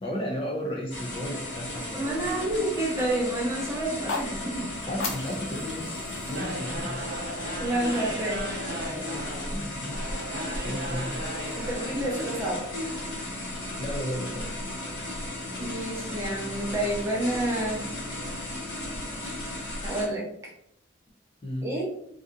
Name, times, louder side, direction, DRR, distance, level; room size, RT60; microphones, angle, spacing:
voice 1, 0.0-2.5 4.9-7.0 9.5-11.2 13.8-14.7 21.4-21.7, equal, 25° left, -2 dB, 0.4 m, -34 dB
sound 1, 0.9-20.1, left 1 dB, 70° left, 1.1 m, -35 dB
voice 2, 1.9-4.7 7.6-8.5 11.6-12.7 15.6-17.9 19.8-20.5 21.6-21.8, right 1 dB, 15° right, -4 dB, 0.7 m, -29 dB
sound 2, 3.9-8.0, left 3 dB, 90° left, 0.5 m, -38 dB
sound 3, 6.3-12.5, right 1 dB, 50° right, 0.7 m, -37 dB
2.7 x 2.4 x 2.3 m, 0.71 s
head